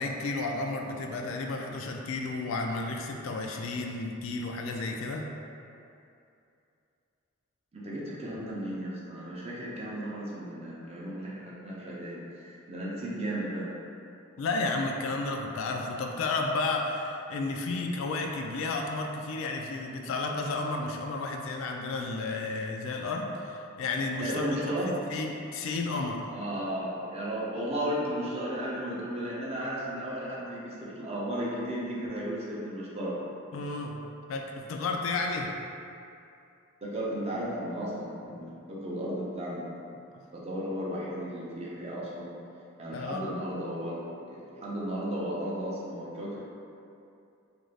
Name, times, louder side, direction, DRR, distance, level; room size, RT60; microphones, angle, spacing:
voice 1, 0.0-5.3 14.4-24.6 24.9-26.2 33.5-34.0 34.3-35.5 40.1-40.2 42.9-43.3, left 3 dB, 70° left, 2 dB, 0.3 m, -32 dB
voice 2, 7.7-13.7 24.2-25.0 26.3-33.2 36.8-39.6 40.3-42.3 42.8-44.0 44.3-46.4, equal, 30° right, -6 dB, 0.5 m, -34 dB
2.5 x 2.3 x 3.2 m, 2.6 s
head